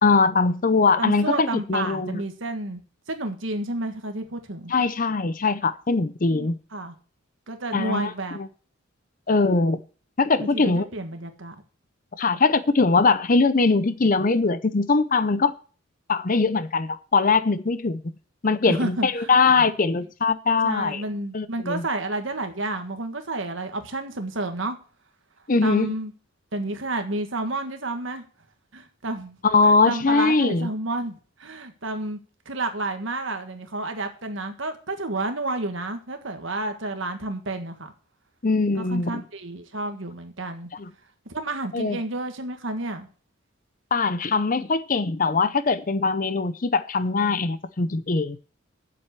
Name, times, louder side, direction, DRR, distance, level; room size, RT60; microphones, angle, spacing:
voice 1, 0.0-2.2 4.7-6.6 7.7-8.5 9.3-9.8 10.2-10.9 12.2-15.5 16.1-18.0 18.4-21.0 21.3-21.8 25.5-25.9 29.5-30.7 38.4-39.2 40.7-40.9 41.7-42.0 43.9-48.4, left 4 dB, 40° left, 0.6 m, -21 dB
voice 2, 1.0-2.8 3.1-4.7 6.3-6.9 7.5-8.4 10.4-11.5 18.7-19.4 20.6-24.8 25.6-26.1 26.5-28.2 28.7-29.4 29.6-32.2 32.4-37.9 38.8-40.7 41.2-43.1, right 2 dB, 65° right, 1.7 m, -30 dB
7.7 x 7.6 x 8.2 m
head